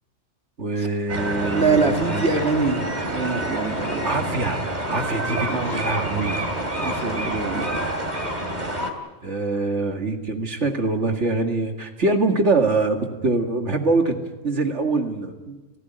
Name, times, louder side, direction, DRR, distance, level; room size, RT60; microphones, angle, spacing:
voice 1, 0.6-2.3 4.0-6.4 9.2-14.2 14.4-15.6, right 3 dB, 80° right, 4 dB, 2.4 m, -24 dB
sound 1, 1.1-8.9, right 1 dB, 40° right, 2.8 m, -27 dB
voice 2, 1.4-4.1 5.5-6.0 6.8-7.8, right 4 dB, 65° right, 4 dB, 2.5 m, -24 dB
30.0 x 15.0 x 9.2 m, 1.2 s
omnidirectional pair, 1.2 m